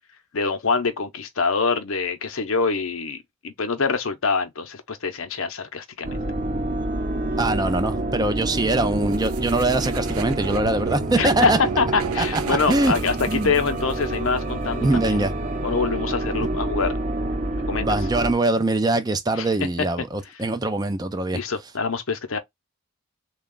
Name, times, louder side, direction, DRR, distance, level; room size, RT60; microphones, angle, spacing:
voice 1, 0.3-3.2 3.4-6.1 11.2-15.2 15.6-16.9 17.7-17.9 19.4-19.5 19.8-19.9 21.3-22.4, left 4 dB, 75° left, 0.8 m, -25 dB
sound 1, 6.0-18.3, right 1 dB, 40° right, 0.8 m, -28 dB
voice 2, 7.4-11.6 12.2-12.9 13.3-13.5 14.8-15.3 17.8-21.4, right 2 dB, 20° right, 0.4 m, -23 dB
sound 2, 9.1-14.0, right 7 dB, 85° right, 0.5 m, -35 dB
3.4 x 2.3 x 3.7 m
head